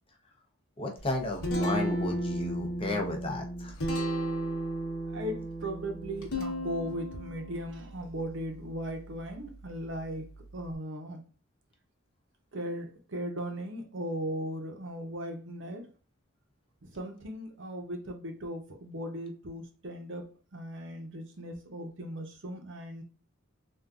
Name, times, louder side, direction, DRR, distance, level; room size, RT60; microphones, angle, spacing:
voice 1, 0.8-3.8, left 2 dB, 25° left, 0.6 m, -33 dB
Guitar, 1.0-10.7, right 1 dB, 80° left, 0.9 m, -35 dB
voice 2, 5.1-10.3 10.5-11.2 12.5-15.9 16.8-23.0, equal, 55° right, 0.7 m, -38 dB
3.6 x 2.5 x 2.3 m
head